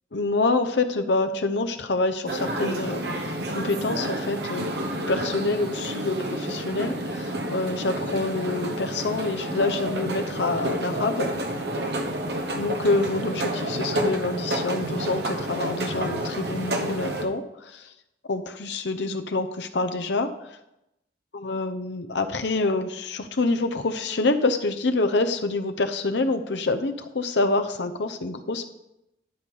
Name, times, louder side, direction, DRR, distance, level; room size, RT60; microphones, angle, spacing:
voice 1, 0.1-4.7 5.1-11.3 12.5-17.9 18.3-20.3 21.3-28.7, left 3 dB, 85° left, 8 dB, 0.8 m, -26 dB
sound 1, 2.3-17.2, right 1 dB, 75° right, 1.1 m, -29 dB
11.0 x 5.4 x 4.9 m, 0.87 s
head